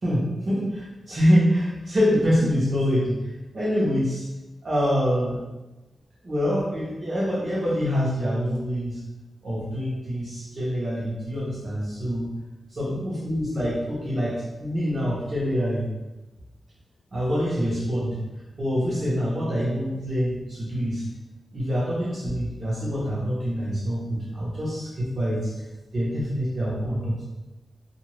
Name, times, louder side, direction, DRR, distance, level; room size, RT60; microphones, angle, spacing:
voice 1, 0.0-4.1 4.6-5.4 6.2-9.0 9.4-12.3 12.7-15.8 17.1-18.2 18.6-21.1 21.5-25.5 25.9-27.2, equal, 45° right, -6 dB, 1.1 m, -25 dB
2.6 x 2.4 x 3.2 m, 1.1 s
wide cardioid pair, 135°, 0 cm